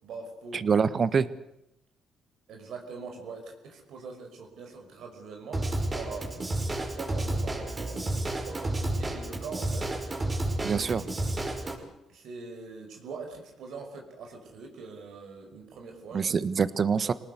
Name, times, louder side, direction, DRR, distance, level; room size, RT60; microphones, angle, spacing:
voice 1, 0.0-0.9 2.5-6.3 6.7-9.9 10.6-10.9 12.1-16.3, right 4 dB, 75° right, 3 dB, 5.4 m, -43 dB
voice 2, 0.5-1.3 10.6-11.0 16.1-17.1, right 6 dB, 45° right, 15 dB, 1.3 m, -25 dB
Drum kit / Drum, 5.5-11.8, right 1 dB, 30° right, 5.5 m, -31 dB
25.5 x 19.0 x 8.1 m, 0.83 s
cardioid pair, 90°, 0 cm